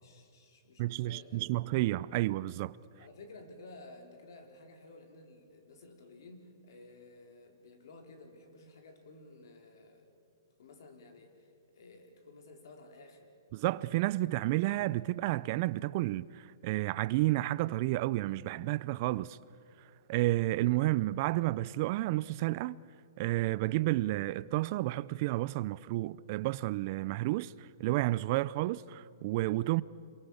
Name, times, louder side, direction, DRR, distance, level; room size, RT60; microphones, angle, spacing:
voice 1, 0.0-1.4 2.9-10.1 10.6-13.3, left 2 dB, 70° left, 4.2 m, -54 dB
voice 2, 0.8-2.8 13.5-19.4 20.1-22.8 23.2-29.8, right 18 dB, 40° right, 0.5 m, -31 dB
27.0 x 22.5 x 7.1 m
hypercardioid pair, 140°, 2 cm